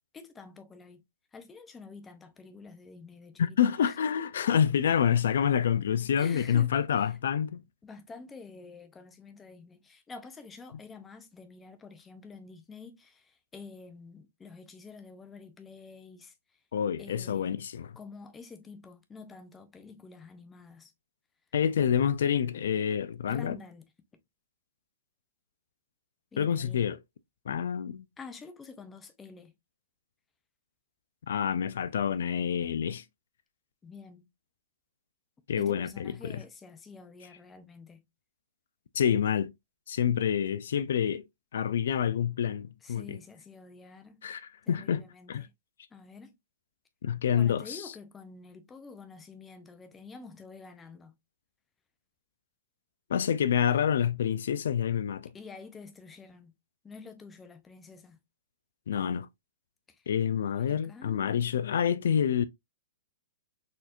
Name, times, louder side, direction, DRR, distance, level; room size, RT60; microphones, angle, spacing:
voice 1, 0.1-1.0 1.3-4.0 6.2-6.7 7.0-7.1 7.8-16.3 17.0-17.6 18.0-20.9 23.3-23.9 26.3-26.8 28.2-29.5 33.8-34.3 35.6-38.1 42.8-44.2 44.7-45.5 45.9-46.3 47.3-51.2 55.3-56.5 56.8-58.2 59.9-60.1 60.5-61.2, left 4 dB, 10° left, 0.5 m, -48 dB
voice 2, 3.4-7.6 16.7-17.9 21.5-23.6 26.4-27.0 27.5-28.1 31.3-33.0 35.5-36.4 38.9-39.5 39.9-41.2 41.5-43.2 44.2-45.5 47.0-47.9 53.1-55.3 58.9-59.3 60.1-62.4, left 8 dB, 70° left, 0.4 m, -27 dB
4.2 x 2.8 x 2.4 m
hypercardioid pair, 160°, 0 cm